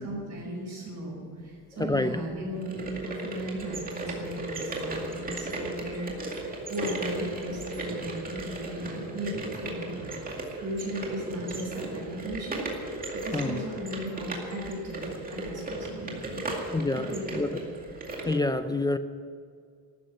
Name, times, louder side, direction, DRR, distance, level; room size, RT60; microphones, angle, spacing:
voice 1, 0.0-10.1 10.6-13.0 13.2-15.0 15.3-17.6, right 1 dB, 40° right, -4 dB, 5.5 m, -36 dB
voice 2, 1.8-2.2 13.3-13.6 16.7-17.5 18.3-19.0, left 2 dB, 10° left, 10 dB, 0.3 m, -27 dB
sound 1, 2.5-18.4, right 2 dB, 20° right, 2.3 m, -36 dB
13.0 x 9.8 x 10.0 m, 2.1 s
cardioid pair, 160°, 39 cm